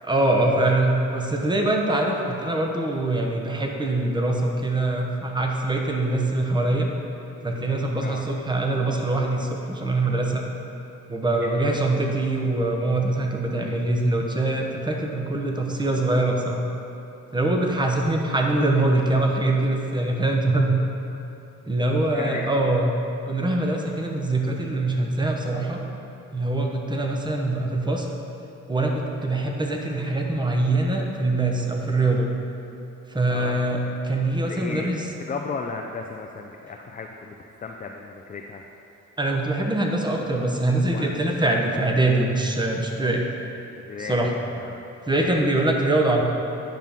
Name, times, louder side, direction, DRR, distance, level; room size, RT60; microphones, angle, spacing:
voice 1, 0.0-6.9 7.4-10.4 11.1-16.6 17.3-20.8 21.7-22.9 23.3-25.8 26.3-28.1 28.7-32.3 33.1-35.0 39.2-43.3 44.0-44.3 45.1-46.2, right 2 dB, 15° right, 1 dB, 0.9 m, -23 dB
voice 2, 11.4-11.7 22.1-22.6 33.3-33.6 34.4-34.9 35.2-37.3 37.6-38.7 40.9-41.2 43.7-44.2 44.5-44.8 45.1-45.5, left 4 dB, 25° left, 2 dB, 0.4 m, -35 dB
9.2 x 5.8 x 3.6 m, 3.0 s
cardioid pair, 95°, 32 cm